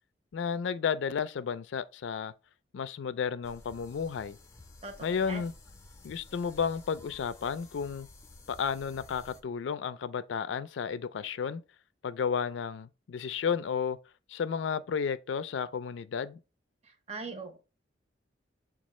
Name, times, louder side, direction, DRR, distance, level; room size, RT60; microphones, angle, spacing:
voice 1, 0.3-2.3 2.7-4.4 5.0-5.5 6.0-8.1 8.5-11.6 12.0-14.0 14.3-16.4, left 6 dB, 85° left, 0.4 m, -32 dB
sound 1, 3.4-9.4, left 2 dB, 15° left, 0.6 m, -53 dB
voice 2, 4.8-5.4 16.8-17.6, right 3 dB, 35° right, 0.8 m, -41 dB
7.1 x 2.4 x 3.0 m
head